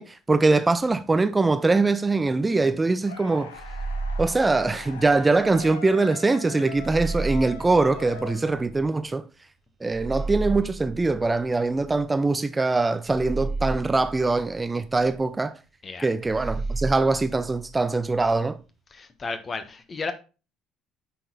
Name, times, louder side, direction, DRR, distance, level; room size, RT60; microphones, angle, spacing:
voice 1, 0.0-3.5 4.2-9.2 9.8-15.5 16.0-18.6, right 3 dB, 20° right, 0.5 m, -22 dB
sound 1, 3.0-9.1, left 5 dB, 85° left, 0.8 m, -42 dB
sound 2, 3.5-5.7 6.7-8.9 9.9-12.2 13.0-15.2 16.2-18.4, right 3 dB, 50° right, 1.6 m, -33 dB
voice 2, 18.9-20.1, left 4 dB, 35° left, 1.2 m, -33 dB
8.9 x 4.2 x 4.0 m
hypercardioid pair, 60°, 0 cm